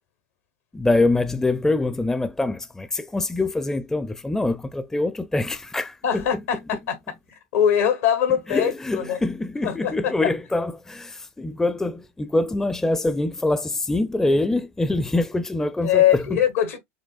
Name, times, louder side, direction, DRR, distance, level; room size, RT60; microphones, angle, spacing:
voice 1, 0.7-6.4 8.5-16.4, left 2 dB, 5° left, 0.4 m, -24 dB
voice 2, 6.0-7.0 7.5-9.2 9.6-9.9 15.8-16.8, left 9 dB, 80° left, 1.3 m, -21 dB
6.4 x 2.1 x 2.3 m
hypercardioid pair, 95°, 7 cm